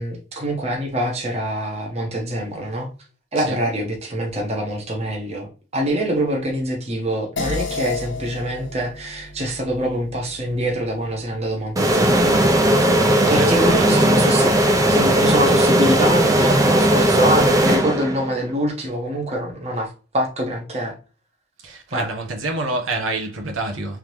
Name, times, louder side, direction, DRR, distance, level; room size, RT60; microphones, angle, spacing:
voice 1, 0.0-2.9 3.3-12.4 13.3-14.6 14.9-20.9 21.9-22.1, equal, 30° right, 1.1 m, -24 dB
sound 1, 7.4-12.1, left 3 dB, 65° left, 1.2 m, -32 dB
sound 2, 11.8-18.4, right 1 dB, 15° right, 0.6 m, -17 dB
voice 2, 13.4-14.1 21.6-24.0, right 2 dB, 85° right, 1.1 m, -27 dB
3.6 x 3.5 x 3.1 m
head